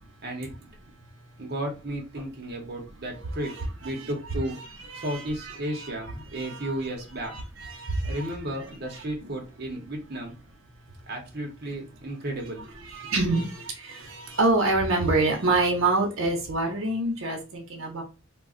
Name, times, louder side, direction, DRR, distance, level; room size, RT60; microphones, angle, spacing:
voice 1, 0.2-0.6 1.4-3.5 3.8-4.6 4.9-7.3 8.0-10.3 11.1-12.8, right 1 dB, 50° right, 0.8 m, -33 dB
voice 2, 3.4-4.1 4.5-5.9 6.3-6.8 7.2-8.4 8.9-9.3 12.8-18.0, right 2 dB, 80° right, 0.7 m, -27 dB
2.4 x 2.3 x 3.6 m
head